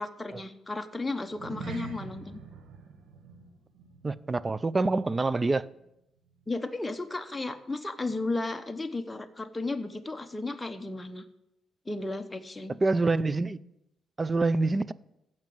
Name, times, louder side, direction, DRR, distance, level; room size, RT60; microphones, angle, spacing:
voice 1, 0.0-2.4 6.5-11.2 11.9-12.8, left 2 dB, 15° left, 0.9 m, -34 dB
sound 1, 1.3-5.9 6.2-6.5 6.9-7.0, right 4 dB, 80° right, 1.7 m, -45 dB
voice 2, 4.0-5.7 12.8-13.6 14.2-14.9, right 3 dB, 25° right, 0.5 m, -26 dB
15.0 x 5.9 x 7.8 m
cardioid pair, 90°, 0 cm